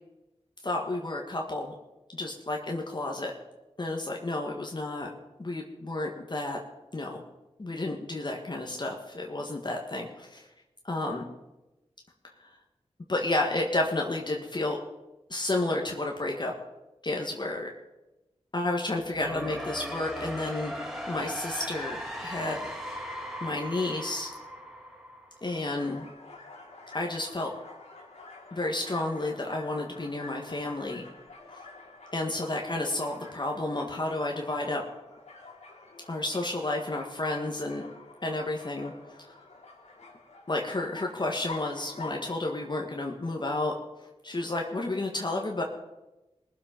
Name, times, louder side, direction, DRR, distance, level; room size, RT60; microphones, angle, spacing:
voice 1, 0.6-1.7 2.1-3.3 3.8-5.1 5.4-6.6 6.9-7.2 7.6-10.4 10.8-11.3 13.1-14.8 15.3-16.5 17.0-17.7 18.5-22.7 23.4-24.3 25.4-26.1 26.9-27.5 28.5-31.0 32.1-34.8 36.1-37.9 38.2-38.9 40.5-43.7 44.2-45.6, left 2 dB, 40° left, 1 dB, 1.8 m, -31 dB
sound 1, 19.0-25.9, equal, 5° right, 4.6 m, -38 dB
sound 2, 25.4-42.3, left 3 dB, 85° left, 2.9 m, -48 dB
19.5 x 7.5 x 5.3 m, 1.0 s
cardioid pair, 45°, 11 cm